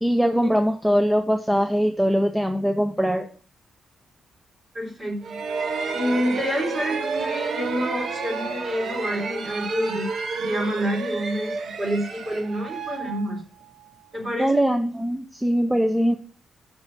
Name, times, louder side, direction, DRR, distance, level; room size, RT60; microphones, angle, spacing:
voice 1, 0.0-3.3 14.4-16.1, equal, 5° right, 5 dB, 0.5 m, -21 dB
voice 2, 4.7-13.4 14.1-14.7, equal, 30° right, -2 dB, 3.6 m, -28 dB
sound 1, 5.2-13.9, right 4 dB, 55° right, 0.9 m, -30 dB
6.3 x 5.4 x 6.0 m, 0.42 s
wide cardioid pair, 175°, 0 cm